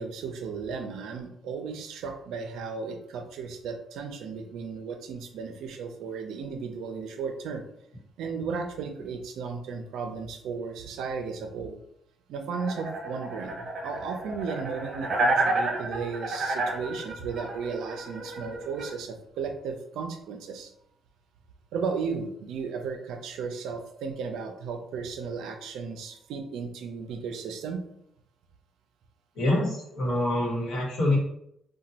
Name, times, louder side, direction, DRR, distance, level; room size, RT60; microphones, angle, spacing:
voice 1, 0.0-7.6 8.2-11.8 12.3-20.7 21.7-27.8, right 5 dB, 85° right, 5 dB, 0.4 m, -35 dB
sound 1, 12.5-18.9, right 2 dB, 55° right, 0.8 m, -30 dB
voice 2, 29.3-31.2, left 1 dB, 75° left, -3 dB, 1.1 m, -26 dB
2.9 x 2.1 x 2.8 m, 0.76 s
cardioid pair, 90°, 0 cm